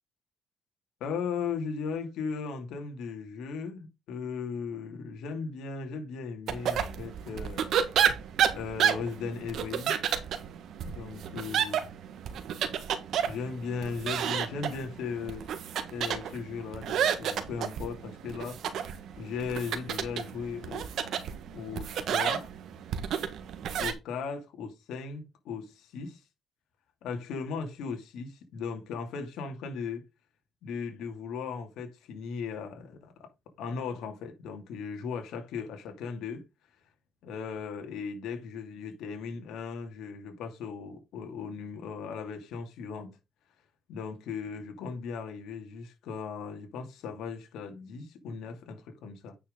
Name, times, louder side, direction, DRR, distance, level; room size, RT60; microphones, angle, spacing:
voice 1, 1.0-8.2 8.5-9.9 10.8-11.8 13.3-15.5 15.9-20.9 21.5-22.5 23.8-26.2 27.0-30.0 30.6-33.1 33.6-36.4 37.2-43.2 43.9-49.4, left 5 dB, 85° left, 2.5 m, -37 dB
sound 1, 6.5-23.9, right 8 dB, 75° right, 1.6 m, -31 dB
9.5 x 5.9 x 3.8 m
cardioid pair, 90°, 0 cm